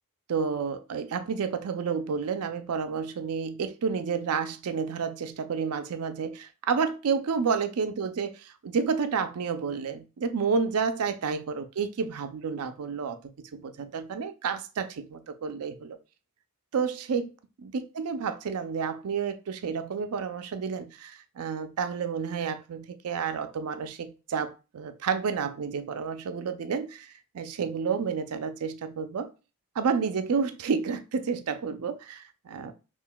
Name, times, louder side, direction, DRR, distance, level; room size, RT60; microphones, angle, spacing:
voice 1, 0.3-16.0 16.7-17.3 17.6-29.3 29.8-32.7, right 5 dB, 85° right, 0.4 m, -30 dB
5.7 x 2.4 x 2.2 m
head